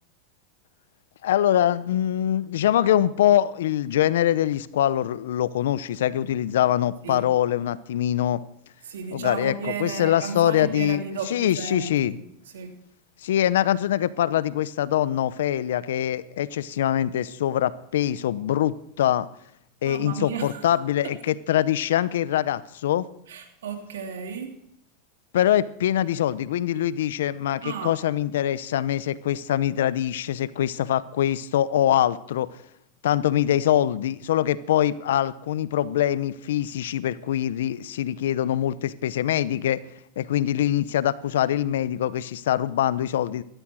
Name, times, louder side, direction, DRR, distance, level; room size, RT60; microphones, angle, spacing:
voice 1, 1.2-8.4 9.1-11.0 11.3-12.1 13.2-19.3 19.8-23.1 25.3-32.5 33.0-39.8 40.2-43.4, left 11 dB, 80° left, 17 dB, 0.8 m, -23 dB
voice 2, 8.8-12.2 12.5-12.7 19.8-20.6 21.0-21.1 23.3-24.5 27.6-28.0, right 5 dB, 85° right, 4 dB, 2.8 m, -33 dB
15.5 x 13.0 x 6.3 m, 0.73 s
hypercardioid pair, 115°, 0 cm